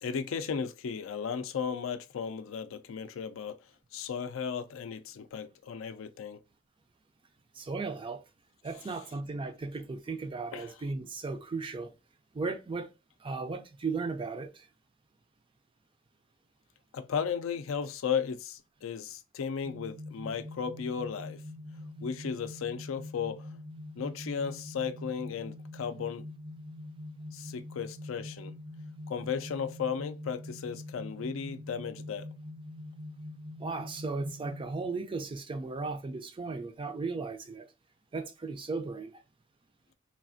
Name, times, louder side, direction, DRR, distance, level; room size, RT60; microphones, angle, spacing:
voice 1, 0.0-3.6 3.9-6.4 10.5-10.7 16.9-21.4 22.0-23.6 24.0-26.3 27.3-28.5 29.1-32.3, left 6 dB, 75° left, 0.4 m, -35 dB
voice 2, 7.5-8.2 8.6-11.9 12.3-12.9 13.2-14.7 33.6-37.7 38.1-39.2, right 4 dB, 25° right, 0.4 m, -36 dB
sound 1, 19.6-34.7, left 1 dB, 80° right, 0.6 m, -44 dB
3.3 x 2.4 x 2.5 m
head